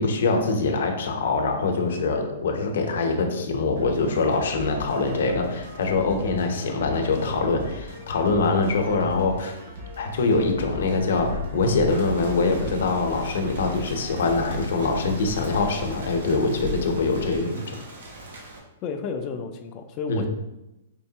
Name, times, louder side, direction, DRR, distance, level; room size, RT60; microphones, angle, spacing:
voice 1, 0.0-9.6 10.0-17.8 20.1-20.3, left 3 dB, 60° left, 3 dB, 0.7 m, -24 dB
sound 1, 3.8-15.8, left 1 dB, 55° right, 1.5 m, -41 dB
Train, 10.5-17.4, left 2 dB, 35° right, 0.6 m, -37 dB
Rain, 11.9-18.6, right 2 dB, 90° right, 1.1 m, -43 dB
voice 2, 18.8-20.3, left 5 dB, 20° left, 6 dB, 0.3 m, -31 dB
4.4 x 3.1 x 2.8 m, 0.96 s
hypercardioid pair, 175°, 0 cm